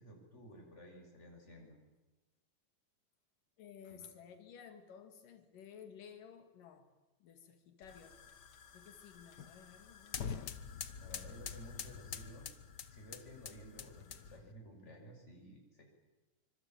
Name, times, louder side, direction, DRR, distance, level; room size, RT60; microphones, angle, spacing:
voice 1, 0.0-1.8 3.9-4.0 11.0-12.5 12.9-15.8, equal, 20° left, 1 dB, 6.4 m, -54 dB
voice 2, 3.6-6.9 7.2-8.2 8.7-10.7, left 7 dB, 90° left, 7 dB, 3.7 m, -55 dB
sound 1, 7.8-14.5, left 7 dB, 60° left, 1.1 m, -47 dB
25.5 x 25.5 x 9.1 m, 1.1 s
omnidirectional pair, 3.7 m